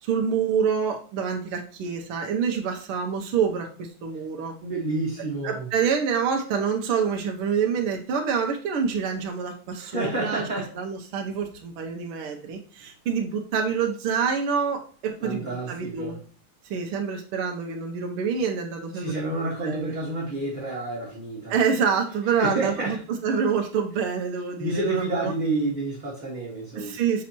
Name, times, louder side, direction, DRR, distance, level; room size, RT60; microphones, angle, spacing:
voice 1, 0.0-4.5 5.4-10.4 10.8-16.1 16.6-19.1 19.6-19.9 21.5-23.0 23.2-25.3 26.8-27.2, right 6 dB, 90° right, 2 dB, 1.7 m, -26 dB
voice 2, 4.6-5.7 9.8-10.7 12.8-12.9 15.2-16.2 18.9-21.5 22.3-23.0 24.6-27.0, right 2 dB, 25° right, -6 dB, 1.4 m, -29 dB
6.1 x 6.1 x 2.9 m, 0.44 s
omnidirectional pair, 2.4 m